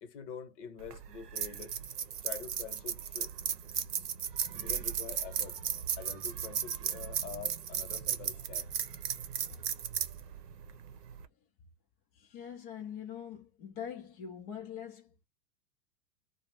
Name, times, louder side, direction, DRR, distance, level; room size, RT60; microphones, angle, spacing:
voice 1, 0.0-1.8 2.2-3.3 4.5-5.6 6.0-8.7, left 7 dB, 45° left, 1.0 m, -46 dB
sound 1, 0.8-11.3, right 8 dB, 75° right, 0.8 m, -36 dB
voice 2, 12.1-15.2, left 8 dB, 20° left, 0.4 m, -43 dB
2.3 x 2.0 x 3.3 m
hypercardioid pair, 110°, 48 cm